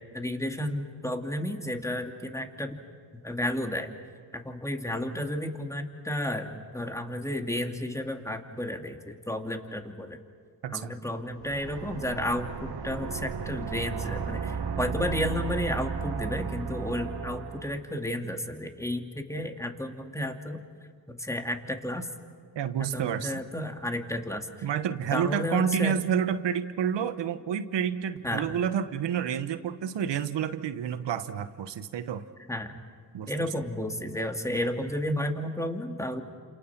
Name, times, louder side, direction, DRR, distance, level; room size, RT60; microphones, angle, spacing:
voice 1, 0.1-2.8 3.2-3.9 4.3-10.2 10.7-20.6 21.1-22.1 22.9-24.7 25.1-26.1 28.2-28.5 32.5-32.8 33.3-36.2, left 1 dB, 5° left, 4 dB, 2.6 m, -32 dB
voice 2, 10.6-10.9 22.5-23.4 24.6-32.3 33.1-33.5, right 8 dB, 90° right, 11 dB, 1.2 m, -29 dB
sound 1, 11.3-17.8, right 6 dB, 65° right, 1.6 m, -34 dB
29.5 x 27.5 x 6.0 m, 2.1 s
cardioid pair, 60°, 41 cm